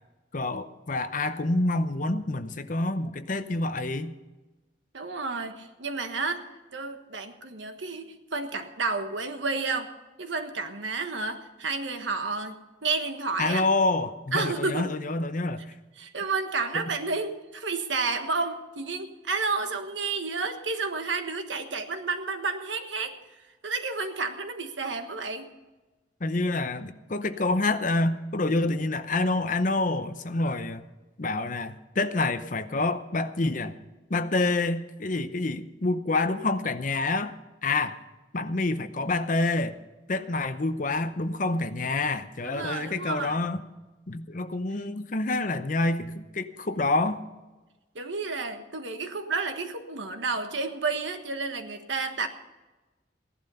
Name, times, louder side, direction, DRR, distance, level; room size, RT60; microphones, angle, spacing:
voice 1, 0.3-4.1 13.4-15.6 16.7-16.8 26.2-30.8 31.2-33.7 34.1-37.4 37.6-38.0 38.3-39.8 40.1-43.6 44.1-47.2, left 2 dB, 45° left, 11 dB, 0.8 m, -27 dB
voice 2, 4.9-6.4 6.7-9.9 10.2-13.6 14.3-14.9 16.0-23.2 23.6-25.5 42.4-43.4 47.9-52.3, right 4 dB, 85° right, 7 dB, 1.4 m, -31 dB
16.0 x 11.5 x 5.6 m, 1.2 s
head